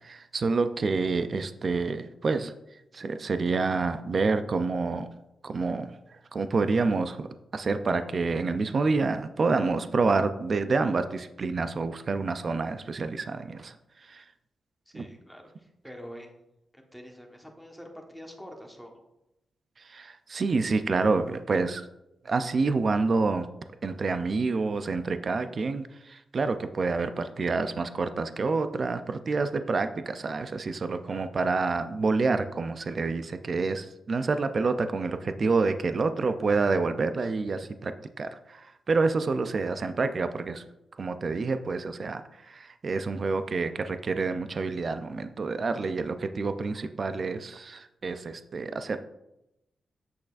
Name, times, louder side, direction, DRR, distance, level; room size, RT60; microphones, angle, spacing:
voice 1, 0.0-2.5 2.9-5.1 5.4-7.3 7.5-13.8 14.0-14.2 14.9-15.1 19.8-21.8 22.2-23.5 23.8-40.6 41.0-49.0, right 4 dB, 45° right, 10 dB, 0.4 m, -28 dB
voice 2, 14.9-16.3 16.7-19.0 34.8-35.1, equal, ahead, 1 dB, 1.2 m, -46 dB
8.4 x 6.3 x 2.5 m, 0.89 s
cardioid pair, 105°, 0 cm